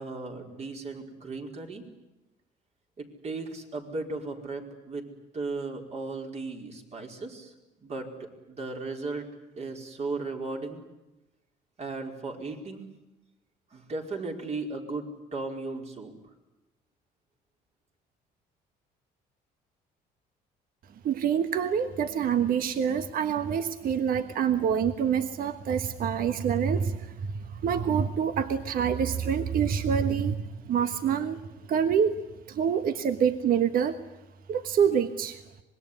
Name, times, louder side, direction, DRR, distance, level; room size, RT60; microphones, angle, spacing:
voice 1, 0.0-1.8 3.0-5.1 5.3-7.5 7.8-9.3 9.6-10.8 11.8-12.8 13.7-16.1, right 3 dB, 40° right, 2 dB, 4.8 m, -36 dB
voice 2, 21.0-27.1 27.5-30.4 30.7-31.4 31.7-32.2 32.5-34.0 34.5-35.4, right 7 dB, 60° right, 9 dB, 1.4 m, -26 dB
25.5 x 21.5 x 9.9 m, 0.97 s
cardioid pair, 110°, 17 cm